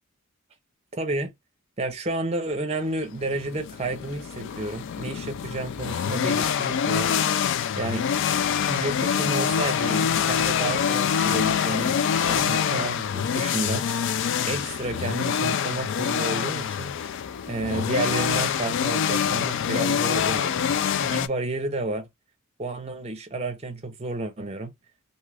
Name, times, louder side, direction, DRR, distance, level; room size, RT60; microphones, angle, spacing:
voice 1, 0.9-1.3 1.8-7.1 7.8-8.0 8.7-13.9 14.5-17.0 17.5-20.6 21.0-22.1 22.6-24.7, right 2 dB, 30° right, 0.6 m, -31 dB
sound 1, 3.0-21.3, left 8 dB, 60° left, 0.3 m, -25 dB
2.7 x 2.4 x 3.2 m
head